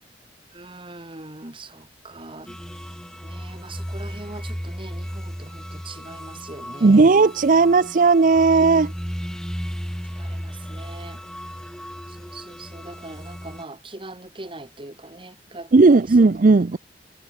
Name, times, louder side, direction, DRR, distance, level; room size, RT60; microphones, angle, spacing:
voice 1, 0.5-2.6 3.2-7.1 10.2-11.2 12.1-16.3, right 2 dB, 30° right, 2.6 m, -41 dB
sound 1, 2.5-13.6, equal, 5° left, 2.3 m, -35 dB
voice 2, 6.8-8.9 15.7-16.8, right 3 dB, 50° right, 0.5 m, -15 dB
head